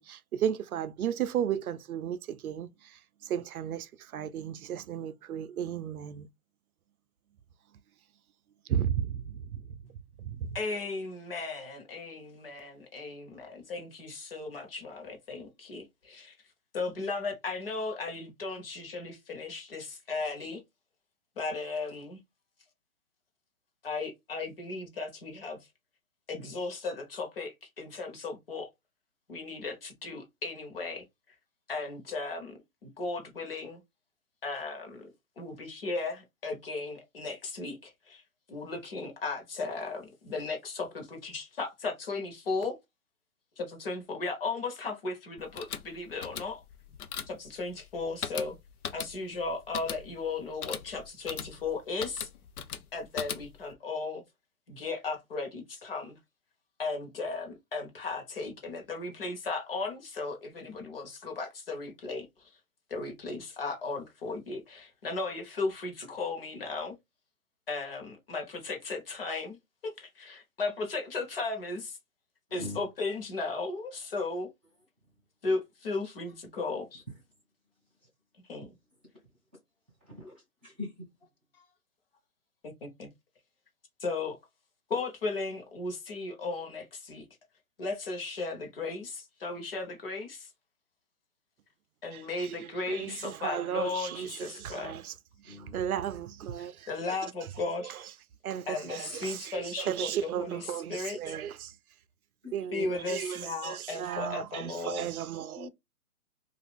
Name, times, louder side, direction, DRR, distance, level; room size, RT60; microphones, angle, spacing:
voice 1, 0.0-2.7 3.2-6.3 8.7-9.6 10.2-10.5 92.1-95.1 95.5-97.2 97.8-98.0 98.4-101.7 102.5-105.7, right 9 dB, 75° right, 0.5 m, -34 dB
voice 2, 10.5-16.4 16.7-20.6 21.4-22.2 23.8-25.6 26.3-28.7 29.3-31.0 31.7-33.8 34.4-35.1 35.4-38.2 38.5-42.8 43.6-46.6 47.3-48.6 48.9-52.3 52.9-54.2 54.7-56.2 56.8-62.3 62.9-67.0 67.7-69.6 69.8-72.0 72.5-74.5 75.4-77.0 78.5-78.7 81.5-81.6 82.8-83.1 84.0-84.4 84.9-87.2 87.8-90.5 92.0-95.0 96.6-97.9 98.7-101.3 102.7-105.1, left 3 dB, 40° left, 0.9 m, -36 dB
sound 1, 45.4-53.7, left 8 dB, 85° left, 0.6 m, -40 dB
voice 3, 80.1-80.9 95.4-95.8 102.4-102.5 105.5-105.7, left 3 dB, 5° right, 0.5 m, -42 dB
2.7 x 2.4 x 3.3 m
hypercardioid pair, 165°, 43 cm